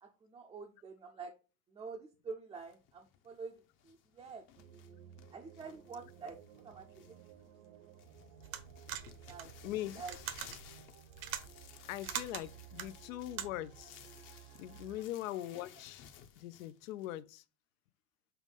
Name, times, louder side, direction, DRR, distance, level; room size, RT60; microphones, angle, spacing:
voice 1, 0.0-1.3 1.7-4.4 5.3-6.4 6.6-7.2 8.9-9.5 9.9-10.2, right 5 dB, 10° right, 0.5 m, -47 dB
sound 1, 2.5-17.2, left 10 dB, 30° left, 0.7 m, -59 dB
sound 2, 4.6-15.0, right 9 dB, 70° right, 1.0 m, -57 dB
sound 3, 8.4-13.8, right 10 dB, 90° right, 1.4 m, -43 dB
voice 2, 9.6-10.0 11.9-13.9 14.6-16.0 16.4-17.4, left 14 dB, 80° left, 0.7 m, -41 dB
7.1 x 3.1 x 5.3 m
supercardioid pair, 165°, 40 cm